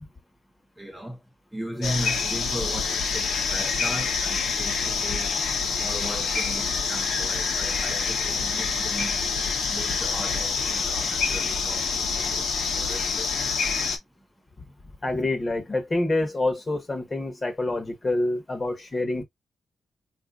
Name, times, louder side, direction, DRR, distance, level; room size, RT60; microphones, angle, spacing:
voice 1, 0.8-1.2 1.5-5.3 5.8-9.2 9.7-12.5 12.8-13.6, equal, 5° right, 0.7 m, -37 dB
sound 1, 1.8-14.0, left 5 dB, 75° left, 1.0 m, -26 dB
voice 2, 15.0-19.2, left 2 dB, 25° left, 1.1 m, -27 dB
4.1 x 2.7 x 2.4 m
wide cardioid pair, 140°, 0 cm